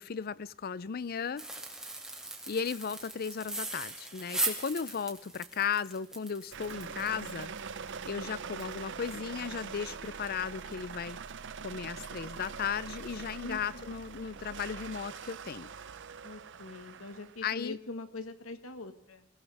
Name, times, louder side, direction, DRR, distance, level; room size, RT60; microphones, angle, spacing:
voice 1, 0.0-1.5 2.5-7.5 8.1-11.2 11.6-15.7 17.4-17.8, left 6 dB, 45° left, 0.5 m, -36 dB
sound 1, 1.4-9.2 9.5-9.6 10.0-10.2 10.6-10.8, right 2 dB, 5° right, 2.2 m, -39 dB
sound 2, 6.5-17.4, right 6 dB, 60° right, 0.7 m, -43 dB
voice 2, 13.4-14.0 16.2-19.3, left 2 dB, 85° left, 1.6 m, -43 dB
23.5 x 16.5 x 3.4 m
head